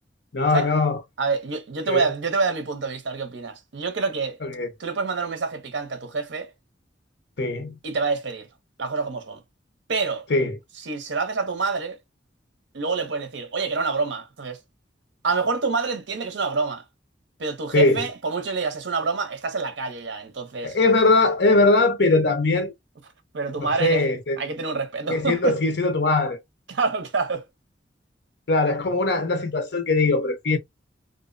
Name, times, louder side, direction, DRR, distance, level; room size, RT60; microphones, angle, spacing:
voice 1, 0.3-1.0 1.9-2.1 4.4-4.7 7.4-7.8 10.3-10.6 17.7-18.0 20.6-22.7 23.6-24.4 25.1-26.4 28.5-30.6, left 3 dB, 65° left, 0.7 m, -21 dB
voice 2, 1.2-4.4 4.8-6.5 7.8-8.5 8.8-9.4 9.9-10.2 10.8-12.0 12.7-14.6 15.2-16.8 17.4-20.8 23.3-24.1 24.4-25.6 26.7-27.4, right 4 dB, 80° right, 0.6 m, -27 dB
2.5 x 2.1 x 2.4 m
head